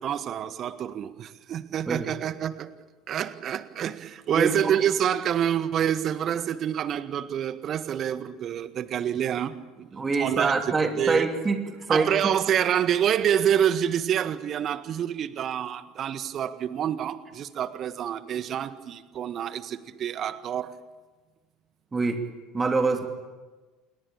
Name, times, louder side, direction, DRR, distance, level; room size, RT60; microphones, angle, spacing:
voice 1, 0.0-2.7 3.1-10.6 11.0-11.2 11.9-20.7, right 9 dB, 40° right, 13 dB, 1.6 m, -27 dB
voice 2, 4.3-4.8 9.9-12.1 21.9-22.2 22.5-23.1, right 4 dB, 20° right, 5 dB, 2.8 m, -25 dB
28.5 x 22.0 x 8.7 m, 1.3 s
figure-of-eight pair, 65°, 0 cm